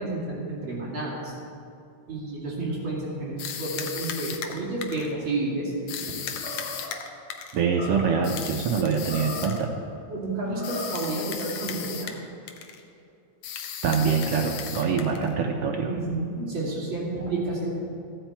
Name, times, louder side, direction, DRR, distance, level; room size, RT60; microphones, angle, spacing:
voice 1, 0.0-1.3 2.1-5.7 6.0-6.2 10.1-12.1 15.9-17.7, right 2 dB, 40° right, -5 dB, 3.1 m, -30 dB
sound 1, 3.4-5.1 5.9-7.6 8.2-9.6 10.6-12.2 12.5-12.8 13.4-15.3, left 8 dB, 70° left, 1.5 m, -36 dB
Animal, 6.3-7.0 7.7-8.3 9.0-9.7 10.4-11.1, left 2 dB, 20° left, 2.3 m, -37 dB
voice 2, 7.5-9.7 13.8-15.9, right 6 dB, 75° right, 2 dB, 1.4 m, -24 dB
14.5 x 8.8 x 4.6 m, 2.6 s
omnidirectional pair, 3.4 m